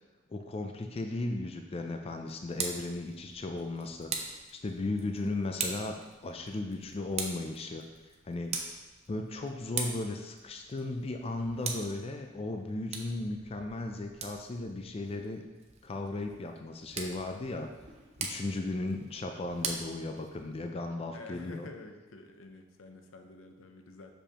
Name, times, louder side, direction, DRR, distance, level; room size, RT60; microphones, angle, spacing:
voice 1, 0.3-7.9 8.3-8.6 9.1-15.4 15.8-17.7 18.2-21.7, left 2 dB, 30° left, 5 dB, 0.4 m, -36 dB
Tick, 2.3-20.7, right 5 dB, 35° right, 0.6 m, -42 dB
voice 2, 12.6-12.9 21.1-24.1, left 2 dB, 80° left, 5 dB, 0.6 m, -49 dB
6.7 x 5.0 x 2.9 m, 1.2 s
head